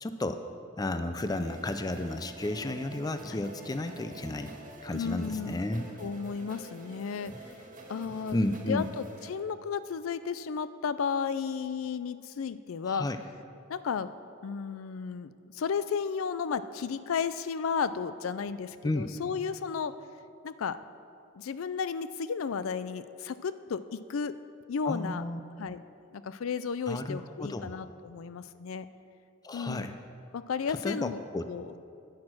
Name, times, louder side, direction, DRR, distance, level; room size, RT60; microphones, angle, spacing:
voice 1, 0.0-0.4 0.8-4.5 4.8-5.8 8.3-8.9 12.9-13.2 18.8-19.1 24.8-25.4 26.9-27.7 29.4-30.0 30.7-31.5, left 1 dB, 20° left, 8 dB, 0.4 m, -32 dB
sound 1, 1.2-9.3, right 1 dB, 40° right, 1.7 m, -47 dB
voice 2, 4.9-5.6 6.0-7.3 7.9-8.4 8.7-13.1 13.7-14.1 14.4-19.9 20.4-20.8 21.4-24.4 24.7-25.3 25.6-25.8 26.1-28.9 29.5-29.8 30.3-31.2 31.5-31.8, left 6 dB, 85° left, 13 dB, 0.4 m, -33 dB
10.5 x 9.7 x 6.1 m, 2.5 s
head